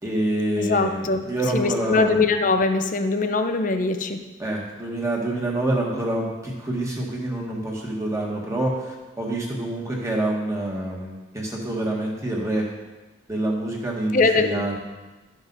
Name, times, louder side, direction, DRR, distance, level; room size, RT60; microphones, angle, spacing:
voice 1, 0.0-2.3 4.4-12.7 13.3-14.8, right 1 dB, 15° right, -3 dB, 1.6 m, -27 dB
voice 2, 0.6-1.2 1.5-4.2 14.1-14.7, left 3 dB, 40° left, 7 dB, 0.6 m, -22 dB
12.5 x 6.2 x 4.0 m, 1.2 s
head